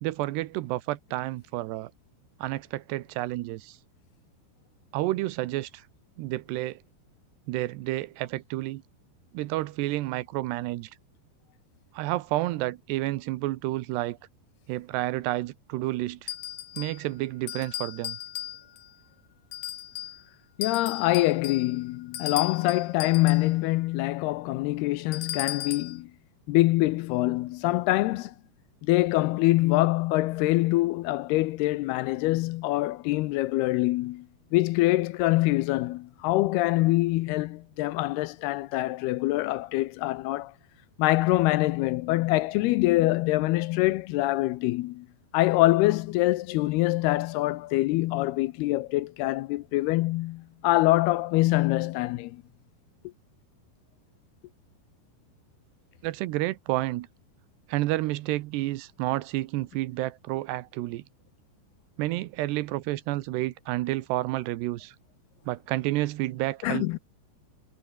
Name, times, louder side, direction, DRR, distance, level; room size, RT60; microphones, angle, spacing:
voice 1, 0.0-1.9 2.4-3.8 4.9-5.8 6.2-6.8 7.5-8.8 9.3-10.9 11.9-14.2 14.7-16.3 16.8-18.2 56.0-57.1 57.7-61.0 62.0-65.0 65.5-67.0, right 17 dB, 80° right, 3.0 m, -30 dB
sound 1, 16.3-17.0 17.5-18.9 19.5-20.2 20.6-23.5 25.1-26.0, left 12 dB, 60° left, 2.4 m, -36 dB
voice 2, 20.6-26.1 26.5-28.3 28.8-34.3 34.5-40.5 41.0-45.1 45.3-52.4 66.6-67.0, left 18 dB, 85° left, 2.5 m, -25 dB
omnidirectional pair, 4.9 m